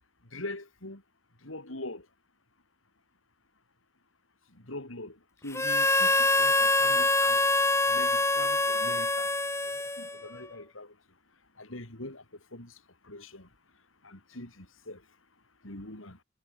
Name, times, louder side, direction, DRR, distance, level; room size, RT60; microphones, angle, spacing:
voice 1, 0.3-1.0 1.4-2.1 4.7-5.2 5.4-7.4 7.9-9.3 9.8-10.9 11.6-12.2 12.5-12.7 13.1-13.5 14.0-15.0 15.6-16.2, left 2 dB, 85° left, 5.3 m, -42 dB
Harmonica, 5.5-10.4, left 2 dB, 15° left, 2.9 m, -25 dB
head